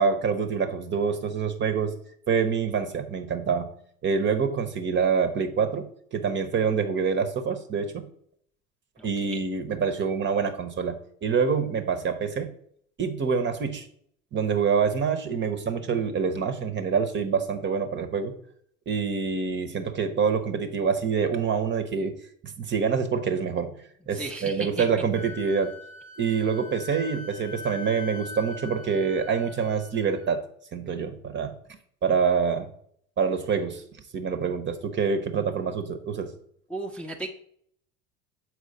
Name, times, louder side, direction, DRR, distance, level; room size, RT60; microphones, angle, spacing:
voice 1, 0.0-1.9 2.3-3.7 4.0-8.1 9.0-12.5 13.0-13.9 14.3-18.3 18.9-22.1 22.4-23.7 24.1-25.7 26.2-30.4 30.7-31.5 32.0-32.7 33.2-33.8 34.1-36.3, right 6 dB, 30° right, 8 dB, 0.8 m, -26 dB
voice 2, 9.0-9.4 24.1-24.9 36.7-37.3, right 2 dB, 5° left, 0 dB, 0.7 m, -35 dB
Wind instrument woodwind instrument, 25.1-30.3, left 3 dB, 85° left, 1.0 m, -42 dB
7.2 x 4.6 x 4.0 m, 0.64 s
figure-of-eight pair, 70°, 40 cm